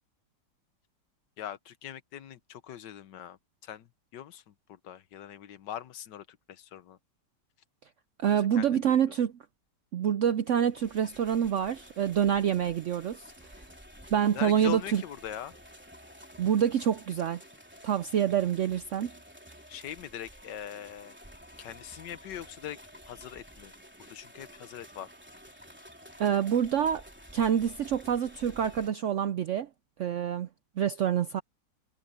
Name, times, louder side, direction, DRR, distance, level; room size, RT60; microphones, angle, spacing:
voice 1, 1.4-3.9 4.1-7.0 8.4-9.0 14.3-15.5 19.7-21.1 21.6-22.8 23.0-23.7 24.1-25.1, left 10 dB, 85° left, 1.6 m, -42 dB
voice 2, 8.2-9.3 9.9-13.6 14.1-15.0 16.4-17.4 17.8-19.1 26.2-27.0 27.3-29.7 30.0-30.5 30.8-31.4, right 9 dB, 75° right, 0.7 m, -27 dB
sound 1, 10.4-28.9, equal, 5° right, 3.4 m, -51 dB
omnidirectional pair, 1.9 m